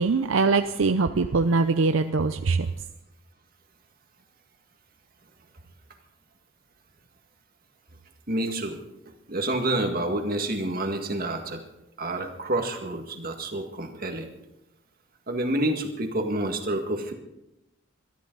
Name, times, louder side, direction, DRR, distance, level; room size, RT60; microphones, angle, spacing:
voice 1, 0.0-2.7, right 4 dB, 75° right, 0.6 m, -22 dB
voice 2, 8.3-8.8 9.3-11.6 12.0-14.3 15.3-17.1, right 1 dB, 45° right, 1.9 m, -28 dB
22.5 x 13.5 x 4.0 m
head